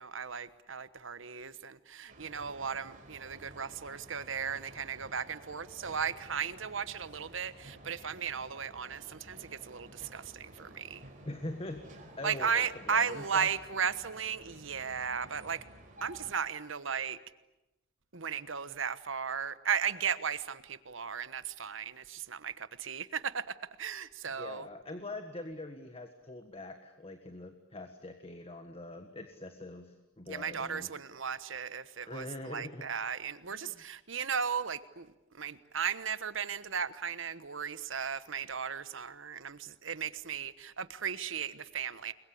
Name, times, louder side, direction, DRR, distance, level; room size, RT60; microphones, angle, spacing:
voice 1, 0.0-11.0 12.2-15.6 16.0-17.2 18.1-24.7 30.3-42.1, right 7 dB, 65° right, 1.2 m, -36 dB
sound 1, 2.1-16.3, right 1 dB, 40° right, 5.0 m, -53 dB
voice 2, 11.2-13.5 24.2-30.9 32.1-32.8 33.5-33.8, left 2 dB, 30° left, 1.6 m, -43 dB
29.0 x 22.5 x 8.5 m
head